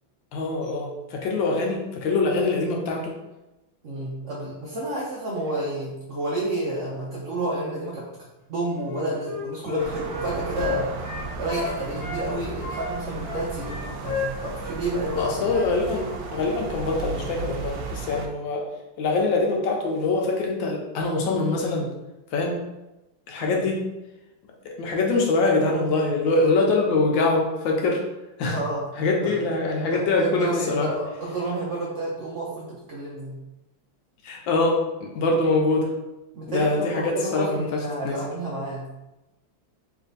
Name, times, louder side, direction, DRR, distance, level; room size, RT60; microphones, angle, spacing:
voice 1, 0.3-3.1 15.2-18.6 19.0-21.9 22.3-22.6 23.3-23.8 24.8-28.0 28.4-28.6 29.0-30.9 34.2-35.9 36.5-37.7 38.0-38.2, left 3 dB, 80° left, 0 dB, 1.4 m, -24 dB
voice 2, 3.8-11.0 11.4-15.4 23.4-23.6 28.5-28.8 29.2-29.4 29.8-33.4 36.3-38.9, right 2 dB, 65° right, -6 dB, 0.7 m, -30 dB
Wind instrument woodwind instrument, 8.8-12.3 12.6-15.7 16.0-16.2, left 4 dB, 55° left, 1.3 m, -32 dB
sound 1, 9.8-18.3, right 4 dB, 85° right, 1.4 m, -35 dB
3.4 x 3.1 x 3.9 m, 0.99 s
omnidirectional pair, 2.1 m